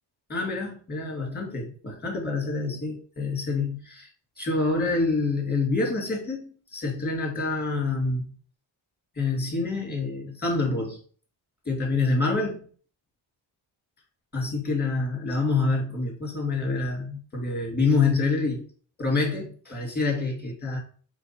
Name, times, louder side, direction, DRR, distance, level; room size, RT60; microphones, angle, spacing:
voice 1, 0.3-4.1 4.4-8.3 9.2-11.0 11.7-12.7 14.3-18.6 19.0-20.8, left 3 dB, 20° left, -1 dB, 2.1 m, -27 dB
3.4 x 3.2 x 4.4 m, 0.43 s
cardioid pair, 85°, 47 cm